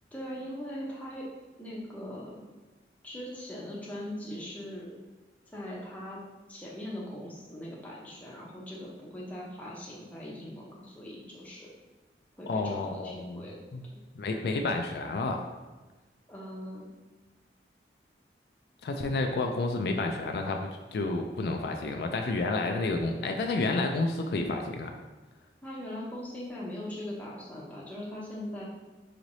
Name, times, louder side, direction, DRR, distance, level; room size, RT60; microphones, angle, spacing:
voice 1, 0.1-1.3 1.6-2.4 3.0-4.9 5.5-6.2 6.5-11.7 12.4-13.6 13.9-14.0 16.3-16.9 25.6-28.6, left 1 dB, 10° left, -5 dB, 0.7 m, -40 dB
voice 2, 12.5-13.4 13.7-13.8 14.2-15.5 18.8-24.9, left 3 dB, 65° left, 3 dB, 0.3 m, -30 dB
4.9 x 3.1 x 2.7 m, 1.2 s
head